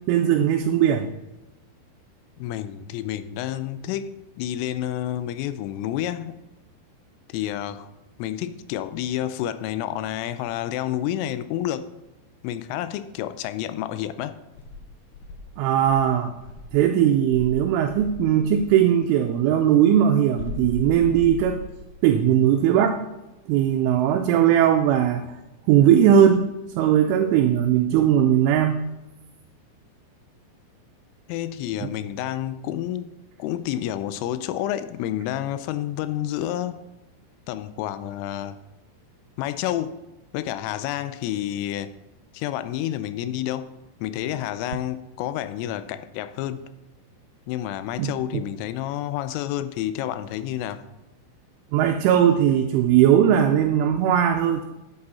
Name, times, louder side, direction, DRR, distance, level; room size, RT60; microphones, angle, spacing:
voice 1, 0.1-1.1 15.6-16.3 16.7-21.6 22.0-23.0 23.5-25.3 25.7-26.5 26.8-28.8 31.8-31.9 48.0-48.4 51.7-54.6, right 9 dB, 80° right, 5 dB, 3.0 m, -19 dB
voice 2, 2.4-6.4 7.3-7.9 8.2-11.9 12.4-14.4 31.3-33.1 33.4-36.8 37.5-38.6 39.4-40.0 40.3-41.9 42.3-43.7 44.0-46.6 47.5-50.8, left 12 dB, 85° left, 12 dB, 3.1 m, -29 dB
Insect, 14.6-16.8 17.3-18.7 20.4-22.0, left 3 dB, 70° left, 2.9 m, -37 dB
11.0 x 8.7 x 4.2 m, 0.99 s
omnidirectional pair, 5.8 m